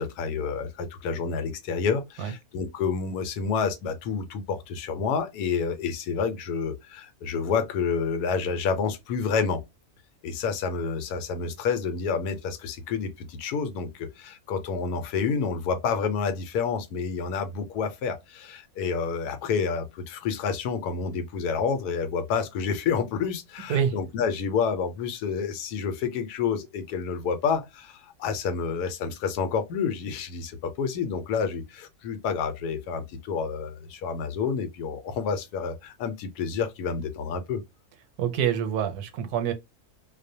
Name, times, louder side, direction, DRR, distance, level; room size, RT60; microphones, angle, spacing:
voice 1, 0.0-9.6 10.2-37.6, left 5 dB, 85° left, 1.1 m, -29 dB
voice 2, 38.2-39.5, right 8 dB, 85° right, 1.1 m, -26 dB
2.6 x 2.1 x 2.6 m
omnidirectional pair, 1.6 m